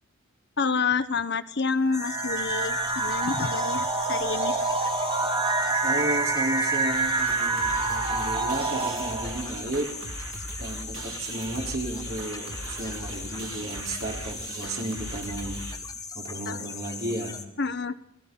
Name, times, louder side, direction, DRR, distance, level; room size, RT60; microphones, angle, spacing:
voice 1, 0.6-4.6 16.5-16.6 17.6-18.0, left 4 dB, 50° left, 12 dB, 1.0 m, -28 dB
sound 1, 1.9-17.4, left 5 dB, 15° left, 1.5 m, -39 dB
sound 2, 1.9-9.5, right 3 dB, 20° right, 1.7 m, -27 dB
voice 2, 5.8-10.0 10.6-15.7 16.1-17.4, right 1 dB, 45° right, 0 dB, 4.8 m, -33 dB
sound 3, 6.9-15.8, right 2 dB, 65° right, 2.9 m, -39 dB
29.5 x 20.0 x 5.8 m, 0.72 s
head